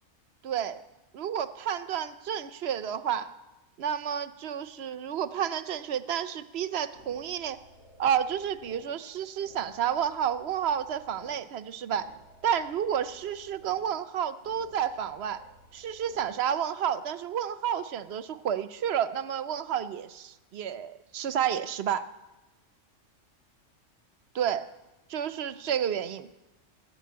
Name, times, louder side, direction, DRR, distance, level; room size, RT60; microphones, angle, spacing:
voice 1, 0.4-0.8 1.1-3.3 3.8-7.6 8.0-12.1 12.4-15.4 15.7-22.1 24.3-24.7 25.1-26.3, right 9 dB, 60° right, 13 dB, 0.8 m, -30 dB
sound 1, 6.5-16.3, equal, 75° left, 6.4 m, -57 dB
14.5 x 10.5 x 8.6 m, 1.1 s
omnidirectional pair, 1.3 m